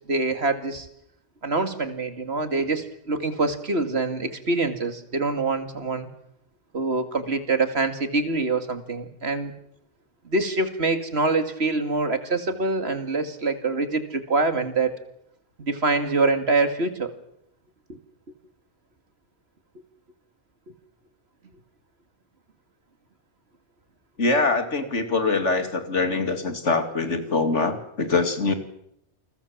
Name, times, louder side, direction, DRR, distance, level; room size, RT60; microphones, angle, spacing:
voice 1, 0.1-0.9 1.4-6.1 6.7-9.5 10.2-15.0 15.6-17.1 17.9-18.0, right 3 dB, 65° right, 9 dB, 2.5 m, -25 dB
voice 2, 24.2-28.5, left 3 dB, 90° left, 8 dB, 2.9 m, -23 dB
29.0 x 21.0 x 7.4 m, 0.76 s
omnidirectional pair, 1.2 m